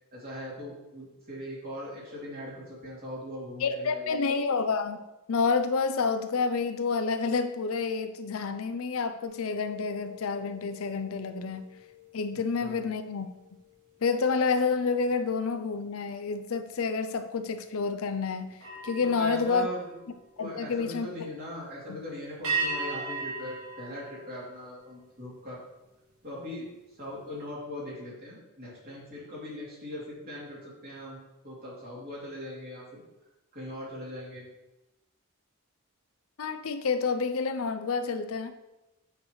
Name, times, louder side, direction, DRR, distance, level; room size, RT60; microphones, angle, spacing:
voice 1, 0.1-4.2 12.6-12.8 19.0-19.9 20.4-25.6 26.2-26.7 27.0-33.0 33.5-34.4, left 1 dB, 45° right, -6 dB, 3.0 m, -40 dB
voice 2, 3.6-5.0 5.3-11.7 12.1-13.3 14.0-18.5 18.8-19.7 20.4-21.1 36.4-38.5, left 4 dB, 65° left, 9 dB, 0.5 m, -29 dB
sound 1, 9.2-14.8 15.3-15.6 18.5-20.7 22.4-25.0, right 4 dB, 80° right, 2.4 m, -39 dB
8.5 x 6.6 x 3.2 m, 0.99 s
head